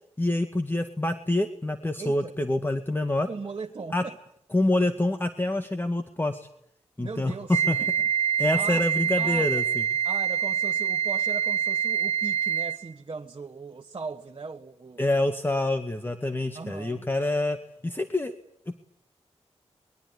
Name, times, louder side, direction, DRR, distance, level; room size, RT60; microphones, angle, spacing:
voice 1, 0.2-3.3 3.9-4.1 4.5-6.5 7.0-7.3 7.7-7.8 8.4-9.8 15.0-17.6 17.8-18.4 18.7-18.8, left 1 dB, 20° left, 2.0 m, -26 dB
voice 2, 2.0-2.3 3.3-4.2 7.0-7.9 8.5-8.9 9.2-9.6 10.0-15.0 16.5-17.0, right 4 dB, 45° right, 1.6 m, -38 dB
Wind instrument woodwind instrument, 7.5-12.9, right 8 dB, 70° right, 1.5 m, -26 dB
22.5 x 22.0 x 9.8 m
wide cardioid pair, 75°, 11 cm